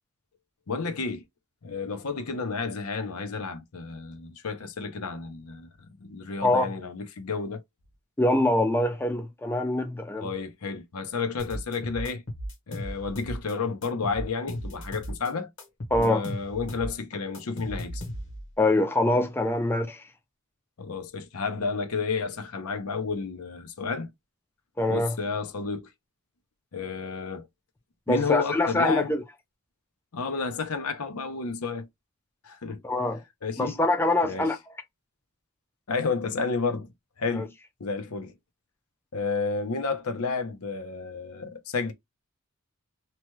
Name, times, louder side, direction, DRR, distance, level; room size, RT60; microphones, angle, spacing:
voice 1, 0.7-1.2 1.6-5.7 6.0-7.6 10.2-12.2 12.7-15.5 15.9-18.0 20.8-24.1 24.9-25.9 26.7-27.4 28.1-29.1 30.1-31.9 32.4-32.8 33.4-33.8 34.2-34.5 35.9-36.9 37.2-37.5 37.8-38.3 39.1-41.9, left 4 dB, 85° left, 0.7 m, -31 dB
voice 2, 8.2-10.3 15.9-16.2 18.6-20.0 24.8-25.1 28.1-29.2 32.8-33.2 33.6-34.6 37.3-37.5, left 1 dB, 10° left, 0.4 m, -24 dB
sound 1, 11.4-13.5 13.8-15.3 15.6-18.5, equal, 55° left, 1.0 m, -36 dB
2.9 x 2.2 x 3.0 m
head